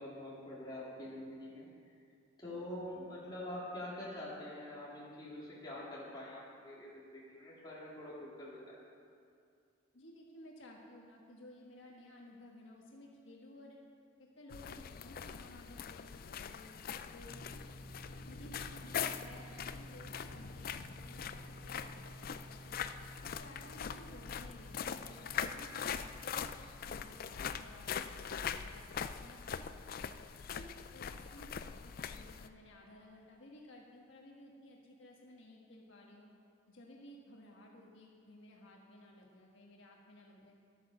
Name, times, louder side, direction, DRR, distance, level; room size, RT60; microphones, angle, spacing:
voice 1, 0.0-1.7 2.4-8.7, left 1 dB, 20° left, -7 dB, 3.2 m, -45 dB
voice 2, 9.9-13.8 14.2-16.7 17.1-17.5 18.2-22.8 23.2-26.5 26.8-30.1 30.5-36.3 36.7-40.6, left 1 dB, 80° left, -1 dB, 1.4 m, -56 dB
sound 1, 14.5-32.5, left 7 dB, 50° left, 0.4 m, -42 dB
sound 2, 17.3-30.8, right 1 dB, 25° right, 0.5 m, -55 dB
11.5 x 8.7 x 6.6 m, 2.4 s
head